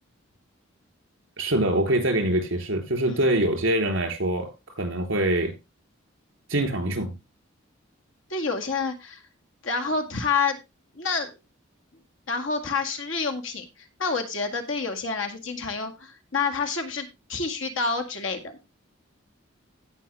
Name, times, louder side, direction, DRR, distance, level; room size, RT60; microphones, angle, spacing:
voice 1, 1.4-5.6 6.5-7.2, right 1 dB, 75° right, 3.5 m, -24 dB
voice 2, 8.3-9.2 9.6-10.6 10.9-11.3 12.3-13.7 14.0-18.6, left 4 dB, 75° left, 2.1 m, -28 dB
17.0 x 5.7 x 3.3 m
head